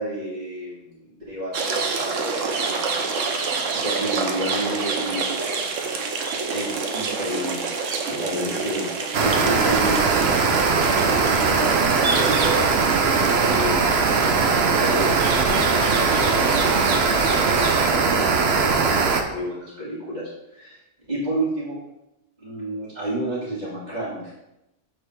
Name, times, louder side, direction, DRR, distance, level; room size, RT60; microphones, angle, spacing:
voice 1, 0.0-5.3 6.5-8.9 9.2-13.0 13.5-20.8 21.1-21.8 22.4-24.3, right 1 dB, 35° right, -10 dB, 2.2 m, -31 dB
sound 1, 1.5-17.9, right 4 dB, 85° right, 1.2 m, -28 dB
sound 2, 9.1-19.2, right 4 dB, 60° right, 0.9 m, -20 dB
8.1 x 4.2 x 4.6 m, 0.88 s
omnidirectional pair, 1.3 m